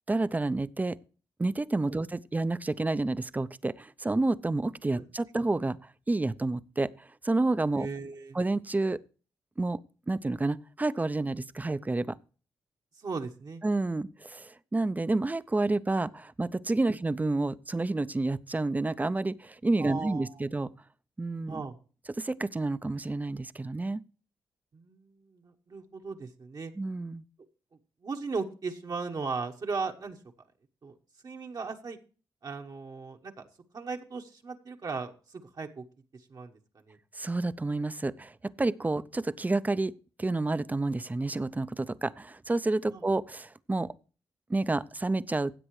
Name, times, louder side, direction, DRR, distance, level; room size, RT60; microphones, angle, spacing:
voice 1, 0.1-1.0 1.4-5.8 6.1-7.9 8.3-9.0 9.6-9.8 10.1-12.2 13.6-20.7 21.2-21.6 22.2-24.0 26.8-27.2 37.1-39.9 40.2-43.9 44.5-45.5, right 2 dB, 20° right, 0.5 m, -29 dB
voice 2, 7.7-8.4 13.0-13.6 19.8-20.4 21.5-21.8 24.7-26.7 28.0-30.2 30.8-30.9 31.2-32.0 32.4-33.4 33.7-35.8 36.1-36.5 36.9-37.0 42.9-43.0, right 4 dB, 50° right, 1.2 m, -37 dB
16.0 x 7.8 x 3.2 m
cardioid pair, 65°, 9 cm